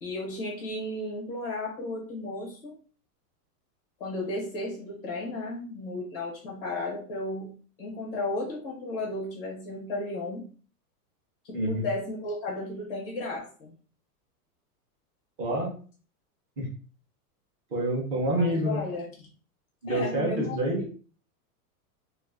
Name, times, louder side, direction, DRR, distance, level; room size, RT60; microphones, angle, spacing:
voice 1, 0.0-2.7 4.0-7.5 7.8-10.5 11.4-13.7 18.3-19.0 19.9-20.9, left 2 dB, 20° left, -1 dB, 0.4 m, -34 dB
voice 2, 11.5-11.9 15.4-15.7 16.6-16.7 17.7-18.9 19.8-20.8, right 1 dB, 25° right, -1 dB, 0.6 m, -27 dB
2.4 x 2.4 x 3.4 m, 0.40 s
supercardioid pair, 175°, 46 cm